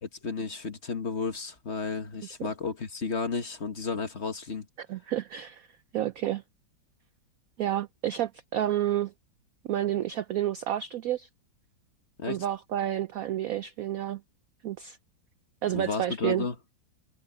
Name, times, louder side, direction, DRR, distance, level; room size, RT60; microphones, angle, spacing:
voice 1, 0.0-4.7 12.2-12.4 15.7-16.5, left 4 dB, 35° left, 1.6 m, -33 dB
voice 2, 4.9-5.7 5.9-6.4 7.6-9.1 9.7-11.3 12.3-14.2 14.6-15.0 15.6-16.5, right 12 dB, 75° right, 0.8 m, -30 dB
omnidirectional pair, 2.1 m